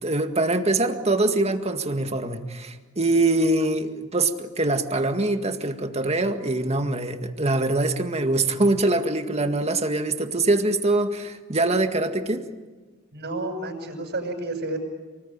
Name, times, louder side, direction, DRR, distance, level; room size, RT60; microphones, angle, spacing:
voice 1, 0.0-12.4, right 2 dB, 30° right, 6 dB, 1.9 m, -23 dB
voice 2, 13.1-14.8, right 2 dB, 55° right, 0 dB, 7.2 m, -30 dB
29.0 x 20.0 x 9.1 m, 1.3 s
head